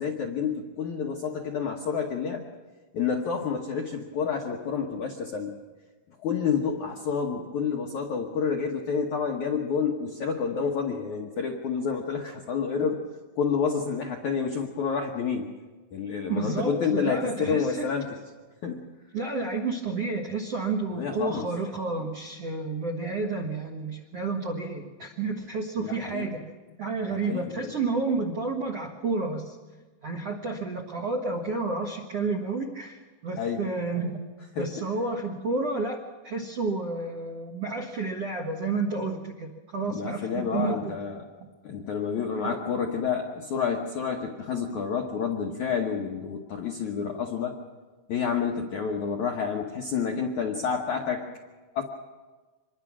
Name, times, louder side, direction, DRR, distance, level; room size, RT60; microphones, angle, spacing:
voice 1, 0.0-2.4 2.9-5.5 6.2-13.0 13.4-15.5 15.9-18.2 18.6-18.8 20.9-21.5 25.8-26.3 27.2-27.7 33.4-33.7 34.6-34.7 39.9-41.2 41.6-47.6 48.1-51.2 51.7-51.8, left 6 dB, 75° left, 1 dB, 1.8 m, -29 dB
voice 2, 16.3-17.9 19.1-26.4 26.8-29.6 30.0-34.2 34.6-36.0 36.2-40.9 42.5-42.6, right 3 dB, 70° right, 3 dB, 1.4 m, -30 dB
25.5 x 21.5 x 6.1 m, 1.3 s
omnidirectional pair, 5.2 m